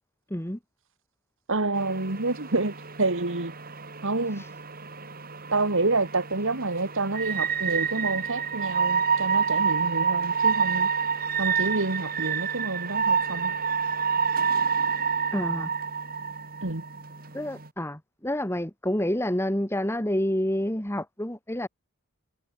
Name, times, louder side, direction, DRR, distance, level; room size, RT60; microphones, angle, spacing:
voice 1, 1.5-3.5 4.0-4.4 5.5-10.9 11.4-13.5 16.6-16.8, right 2 dB, 60° right, 2.2 m, -28 dB
sound 1, 1.7-17.7, right 6 dB, 40° right, 4.2 m, -28 dB
voice 2, 15.3-15.7 17.3-21.7, left 1 dB, 10° left, 2.6 m, -28 dB
head